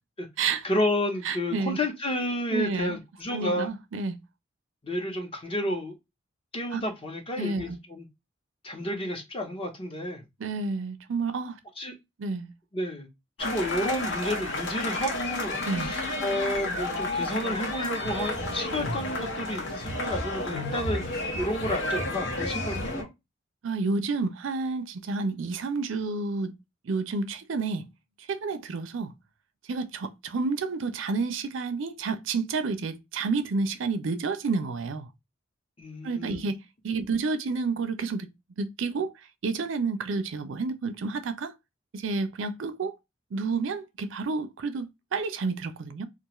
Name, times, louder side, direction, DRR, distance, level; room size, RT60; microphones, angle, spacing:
voice 1, 0.6-3.7 4.8-5.9 6.5-8.0 8.6-10.2 11.8-11.9 12.7-13.1 13.4-23.1 35.8-36.5, left 1 dB, 30° left, 0.8 m, -31 dB
voice 2, 1.2-1.8 2.5-3.0 3.3-4.2 6.7-6.8 7.4-7.8 10.4-11.6 12.2-12.5 15.6-15.9 23.6-26.5 26.8-27.9 28.2-29.1 29.6-35.1 36.0-38.3 38.6-39.1 39.4-41.6 41.9-43.0 43.3-46.1, right 4 dB, 75° right, 0.4 m, -30 dB
sound 1, 13.4-23.0, left 2 dB, 65° left, 0.9 m, -31 dB
2.4 x 2.3 x 2.9 m
head